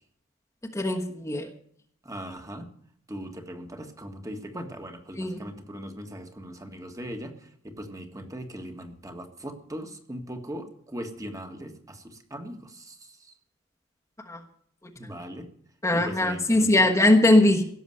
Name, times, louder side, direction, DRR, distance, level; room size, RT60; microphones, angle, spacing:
voice 1, 0.7-1.5 5.2-5.4 14.3-14.4 15.8-17.6, left 1 dB, 15° left, 1 dB, 1.3 m, -20 dB
voice 2, 2.1-2.7 3.1-7.3 7.6-13.0 15.0-15.5 15.9-16.9, equal, 15° right, 5 dB, 1.7 m, -39 dB
17.0 x 7.1 x 7.8 m, 0.64 s
head